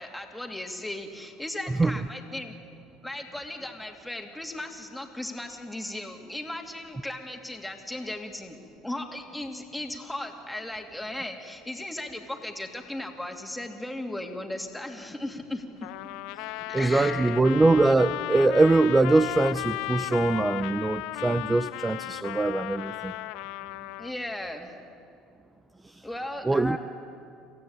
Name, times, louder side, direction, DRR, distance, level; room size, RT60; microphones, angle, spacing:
voice 1, 0.0-2.5 3.0-8.6 8.8-15.9 16.7-17.3 24.0-24.7 26.0-26.8, left 1 dB, 5° left, 3 dB, 2.7 m, -36 dB
Trumpet, 15.8-24.1, left 18 dB, 75° left, 0.5 m, -35 dB
voice 2, 16.7-23.1 26.4-26.8, right 2 dB, 15° right, 12 dB, 0.6 m, -22 dB
26.0 x 15.0 x 8.9 m, 2.5 s
supercardioid pair, 90°, 0 cm